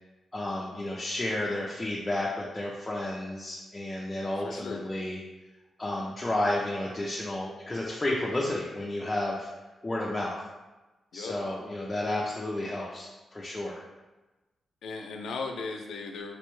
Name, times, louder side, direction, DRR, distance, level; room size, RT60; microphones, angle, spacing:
voice 1, 0.3-5.2 5.8-9.5 9.8-10.4 11.1-13.8, left 1 dB, 20° left, -4 dB, 0.4 m, -32 dB
voice 2, 4.4-4.8 11.1-11.3 14.8-16.4, left 4 dB, 90° left, 4 dB, 0.4 m, -37 dB
4.4 x 2.1 x 3.0 m, 1.1 s
cardioid pair, 95°, 0 cm